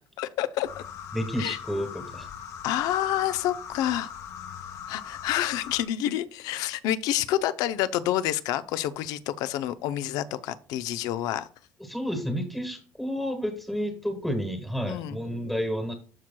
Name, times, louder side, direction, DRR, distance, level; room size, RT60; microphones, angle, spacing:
voice 1, 0.2-0.8 1.4-1.6 2.6-4.1 4.9-11.5 14.9-15.2, left 12 dB, 75° left, 0.6 m, -28 dB
sound 1, 0.6-5.8, left 8 dB, 55° left, 1.2 m, -40 dB
voice 2, 1.1-2.3 11.8-16.0, equal, ahead, 1.3 m, -30 dB
13.5 x 4.7 x 2.3 m
cardioid pair, 155°, 6 cm